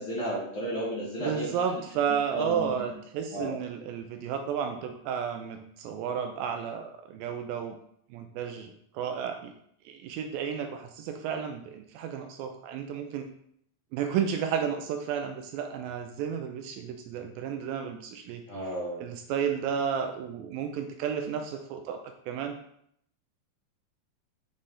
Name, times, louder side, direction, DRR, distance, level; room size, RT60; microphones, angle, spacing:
voice 1, 0.0-1.5 2.3-2.8 3.3-3.5 18.5-19.0, right 1 dB, 50° left, -8 dB, 1.7 m, -33 dB
voice 2, 1.2-7.8 8.1-9.5 9.9-13.4 13.9-18.7 19.0-22.6, right 7 dB, 80° right, 6 dB, 2.1 m, -32 dB
6.5 x 4.1 x 3.7 m, 0.70 s
omnidirectional pair, 4.3 m